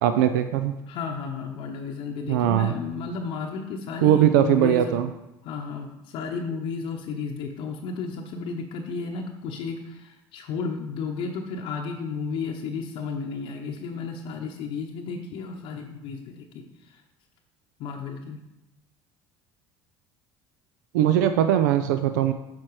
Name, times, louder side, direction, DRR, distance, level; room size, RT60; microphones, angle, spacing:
voice 1, 0.0-0.7 2.3-2.7 4.0-5.1 20.9-22.3, right 11 dB, 85° right, 9 dB, 0.4 m, -20 dB
voice 2, 0.9-5.0 5.4-17.0 17.8-18.4, left 5 dB, 65° left, 1 dB, 0.8 m, -33 dB
7.3 x 4.5 x 4.7 m, 0.94 s
supercardioid pair, 85°, 10 cm